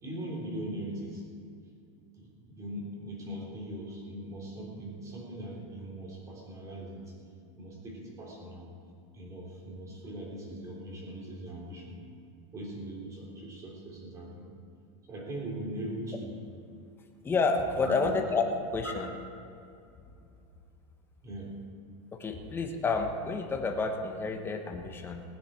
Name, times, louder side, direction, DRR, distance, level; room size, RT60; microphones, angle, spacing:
voice 1, 0.0-1.2 2.2-7.1 7.5-8.7 9.1-12.0 12.5-14.5 15.1-16.4 17.8-18.1 21.2-21.5, right 1 dB, 20° right, -2 dB, 3.2 m, -40 dB
voice 2, 17.2-19.1 22.1-25.2, left 4 dB, 15° left, 4 dB, 1.0 m, -30 dB
20.0 x 9.7 x 4.4 m, 2.5 s
supercardioid pair, 165°, 17 cm